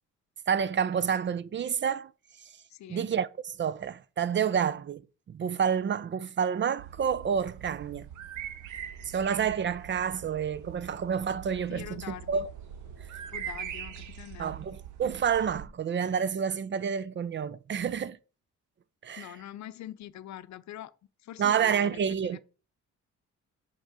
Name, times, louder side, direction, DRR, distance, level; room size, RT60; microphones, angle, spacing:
voice 1, 0.5-2.1 2.4-2.5 2.9-5.0 5.3-8.1 9.1-12.5 14.4-18.2 19.0-19.3 21.4-22.4, right 7 dB, 40° right, 0.5 m, -29 dB
voice 2, 2.7-3.1 11.7-12.4 13.3-14.6 19.2-20.9 21.2-22.4, left 13 dB, 65° left, 0.6 m, -44 dB
sound 1, 6.8-15.7, right 9 dB, 80° right, 1.0 m, -43 dB
sound 2, 8.7-14.1, right 2 dB, 65° right, 4.4 m, -57 dB
6.3 x 5.5 x 4.9 m
cardioid pair, 90°, 30 cm